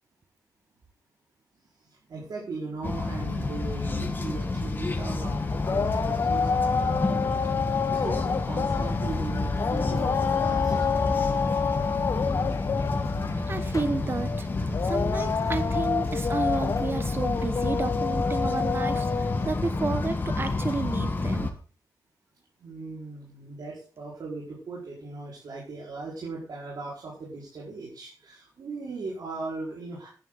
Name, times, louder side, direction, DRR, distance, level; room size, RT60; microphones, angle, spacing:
voice 1, 2.1-7.3 7.6-11.0 22.6-30.1, right 3 dB, 70° right, -5 dB, 5.3 m, -38 dB
sound 1, 2.8-21.5, left 3 dB, 30° left, 1.6 m, -29 dB
sound 2, 4.9-21.3, left 5 dB, 50° left, 1.0 m, -29 dB
voice 2, 13.3-14.5 14.9-21.5, right 3 dB, 35° right, 10 dB, 1.2 m, -31 dB
14.0 x 11.5 x 4.1 m, 0.37 s
wide cardioid pair, 155°, 7 cm